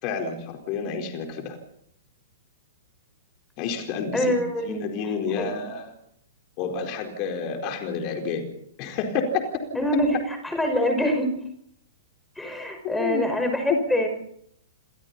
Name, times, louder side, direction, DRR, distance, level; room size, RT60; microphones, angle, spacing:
voice 1, 0.0-1.6 3.6-4.3 4.7-5.9 6.6-8.5 8.8-9.4 12.8-13.2 13.7-13.8, left 6 dB, 35° left, 3 dB, 4.5 m, -29 dB
voice 2, 4.1-4.9 5.4-5.5 9.7-11.3 12.4-14.1, equal, 5° left, 5 dB, 5.3 m, -25 dB
29.0 x 26.0 x 4.3 m, 0.70 s
figure-of-eight pair, 105°, 0 cm